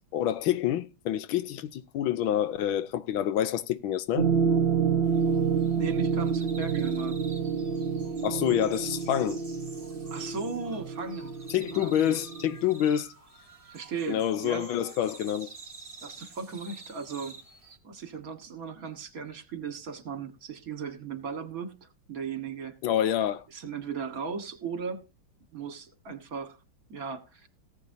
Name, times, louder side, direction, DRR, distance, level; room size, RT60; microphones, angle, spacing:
voice 1, 0.1-4.3 8.2-9.4 11.5-13.1 14.1-15.5 22.8-23.4, left 11 dB, 80° left, 1.5 m, -27 dB
sound 1, 4.2-12.7, right 6 dB, 70° right, 0.5 m, -28 dB
sound 2, 5.0-17.8, right 3 dB, 20° right, 1.4 m, -49 dB
voice 2, 5.8-7.2 10.1-11.3 11.7-12.2 13.7-14.7 16.0-17.4 17.8-22.8 23.5-25.0 25.5-26.6 26.9-27.5, right 5 dB, 45° right, 1.9 m, -37 dB
18.5 x 8.3 x 2.7 m
omnidirectional pair, 2.3 m